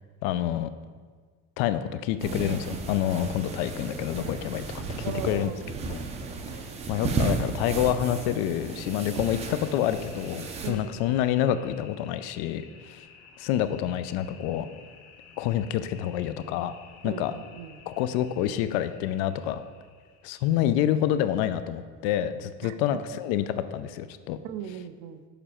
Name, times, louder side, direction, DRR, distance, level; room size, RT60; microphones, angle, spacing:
voice 1, 0.2-0.7 1.6-4.6 5.0-5.5 5.8-6.0 6.5-6.6 6.9-13.0 13.4-14.6 15.4-16.7 17.0-17.3 17.9-19.6 20.2-24.4, left 11 dB, 80° left, 12 dB, 0.5 m, -27 dB
sound 1, 2.2-10.7, right 4 dB, 20° right, 0.4 m, -34 dB
voice 2, 5.0-5.8 10.6-11.0 17.0-17.8 22.6-22.7 24.4-25.2, right 9 dB, 85° right, 10 dB, 0.6 m, -38 dB
sound 2, 8.8-21.4, left 5 dB, 60° left, 0.9 m, -53 dB
6.8 x 5.1 x 4.3 m, 1.6 s
cardioid pair, 175°, 33 cm